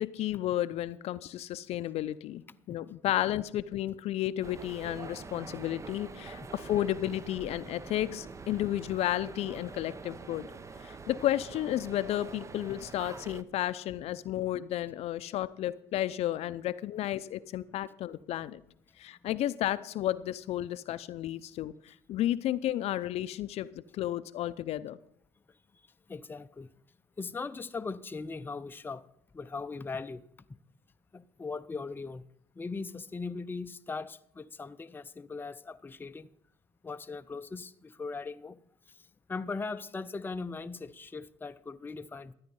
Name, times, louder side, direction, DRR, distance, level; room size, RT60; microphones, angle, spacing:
voice 1, 0.0-2.4 2.7-10.5 10.8-18.6 19.0-25.0, left 13 dB, 60° left, 0.5 m, -32 dB
sound 1, 4.4-13.4, right 4 dB, 25° right, 0.7 m, -45 dB
voice 2, 26.1-26.7 27.2-29.1 29.3-30.2 31.1-32.2 32.5-36.3 36.8-38.6 38.9-42.3, left 4 dB, 15° left, 0.6 m, -39 dB
13.0 x 9.4 x 5.4 m
supercardioid pair, 80°, 12 cm